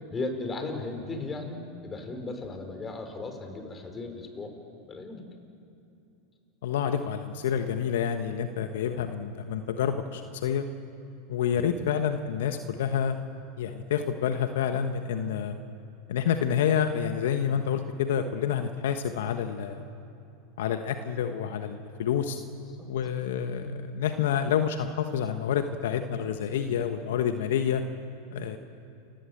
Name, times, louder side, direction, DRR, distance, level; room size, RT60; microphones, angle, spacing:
voice 1, 0.1-4.5 4.9-5.3 11.5-11.9 22.8-22.9, left 3 dB, 20° left, 5 dB, 4.6 m, -36 dB
voice 2, 6.6-10.7 11.3-13.2 13.6-15.6 16.1-19.8 20.6-22.4 22.9-27.8 28.3-28.6, left 8 dB, 70° left, 8 dB, 1.2 m, -28 dB
29.0 x 16.0 x 7.9 m, 2.8 s
hypercardioid pair, 95°, 0 cm